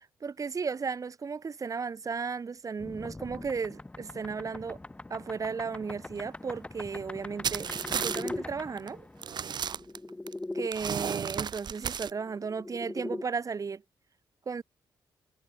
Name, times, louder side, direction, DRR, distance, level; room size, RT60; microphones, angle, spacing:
voice 1, 0.2-4.8 5.1-9.0 10.5-13.8 14.5-14.6, right 5 dB, 40° right, 1.4 m, -35 dB
sound 1, 2.8-10.7 12.0-13.2, left 2 dB, 15° left, 1.0 m, -41 dB
sound 2, 7.4-8.3 8.8-8.9 9.2-10.3 10.7-12.1, right 8 dB, 55° right, 1.1 m, -33 dB
cardioid pair, 75°, 9 cm